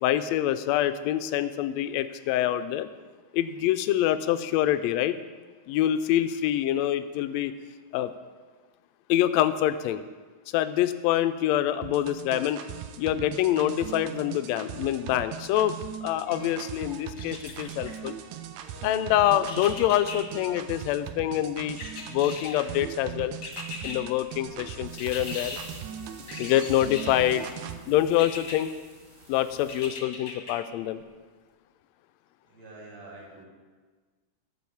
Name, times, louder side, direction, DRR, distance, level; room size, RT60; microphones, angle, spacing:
voice 1, 0.0-2.9 3.3-5.2 5.7-7.5 7.9-8.1 9.1-10.0 10.5-12.6 13.0-15.7 16.0-18.2 18.8-21.8 22.1-23.3 23.8-25.6 26.4-27.4 27.9-28.7 29.3-31.0, left 12 dB, 80° left, 11 dB, 1.6 m, -25 dB
sound 1, 11.8-27.8, right 10 dB, 90° right, 2.1 m, -40 dB
sound 2, 16.2-29.9, equal, 20° right, 2.1 m, -50 dB
sound 3, 17.2-17.9 19.5-20.2 21.8-22.7 23.4-24.0 25.0-25.6 26.3-27.2 28.2-28.6 29.7-30.5 31.0-31.1, left 4 dB, 45° left, 1.4 m, -39 dB
voice 2, 32.4-33.5, right 2 dB, 60° right, -3 dB, 3.3 m, -46 dB
12.5 x 4.9 x 7.1 m, 1.4 s
omnidirectional pair, 3.4 m